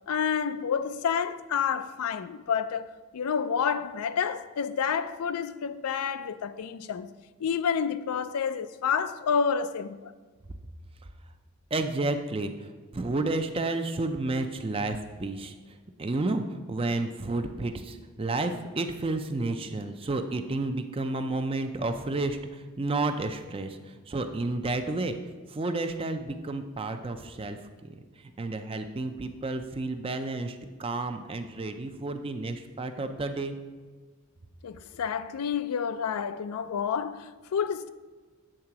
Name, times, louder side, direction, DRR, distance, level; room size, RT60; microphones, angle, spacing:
voice 1, 0.1-7.1 7.4-10.1 34.6-37.9, left 7 dB, 85° left, 0.4 m, -29 dB
voice 2, 11.7-15.5 16.0-25.1 25.5-27.6 28.4-33.6, right 2 dB, 25° right, 0.4 m, -31 dB
8.9 x 3.7 x 5.8 m
head